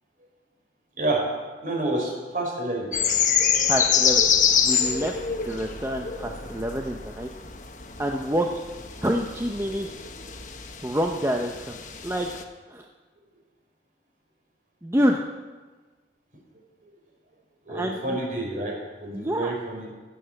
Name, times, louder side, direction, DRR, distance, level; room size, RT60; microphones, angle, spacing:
voice 1, 1.6-2.9 16.8-16.9 17.6-19.9, right 2 dB, 50° right, 0 dB, 4.3 m, -29 dB
sound 1, 2.9-12.4, left 7 dB, 45° left, 1.1 m, -26 dB
voice 2, 3.7-4.2 4.6-7.3 8.0-8.5 9.0-9.9 10.8-11.8 12.0-12.3 12.7-12.8 14.8-15.3 17.7-18.2 19.1-19.5, equal, 15° right, 2 dB, 0.7 m, -27 dB
16.5 x 8.2 x 7.7 m, 1.3 s
head